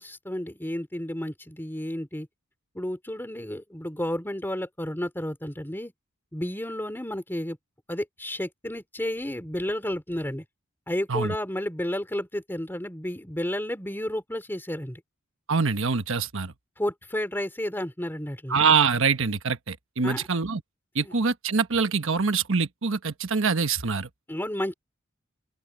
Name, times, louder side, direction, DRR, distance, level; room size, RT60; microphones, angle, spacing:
voice 1, 0.0-2.3 2.7-5.9 6.3-7.6 7.9-10.4 10.9-15.0 16.8-18.6 20.0-20.2 21.0-21.1 24.3-24.7, left 1 dB, 10° left, 2.9 m, -31 dB
voice 2, 15.5-16.5 18.5-20.6 20.9-24.1, right 5 dB, 65° right, 1.2 m, -24 dB
open air
head